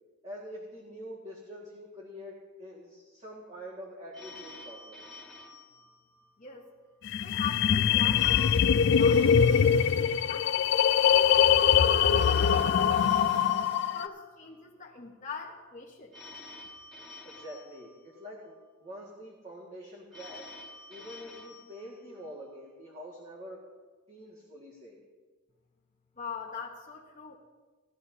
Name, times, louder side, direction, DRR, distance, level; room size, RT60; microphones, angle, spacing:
voice 1, 0.2-5.0 17.2-20.4 20.9-23.6 24.1-25.0, equal, 30° right, -5 dB, 1.8 m, -45 dB
Telephone, 4.1-6.6 8.1-10.6 12.1-14.6 16.1-18.6 20.1-22.6, left 2 dB, ahead, 1.8 m, -49 dB
sound 1, 7.1-14.1, left 8 dB, 55° left, 0.4 m, -23 dB
voice 2, 7.2-9.8 10.3-13.4 13.9-16.1 26.2-27.4, left 5 dB, 35° left, -3 dB, 1.0 m, -42 dB
18.5 x 13.0 x 2.7 m, 1.4 s
head